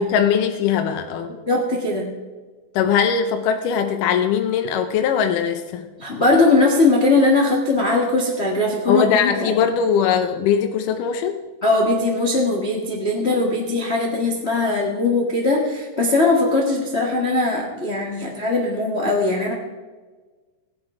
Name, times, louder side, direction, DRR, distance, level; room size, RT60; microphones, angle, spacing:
voice 1, 0.0-1.4 2.8-5.9 8.9-11.4, left 7 dB, 75° left, 6 dB, 2.1 m, -20 dB
voice 2, 1.3-2.1 6.0-9.6 11.6-19.5, left 2 dB, 55° left, 0 dB, 0.7 m, -20 dB
17.0 x 9.7 x 4.9 m, 1.3 s
omnidirectional pair, 4.2 m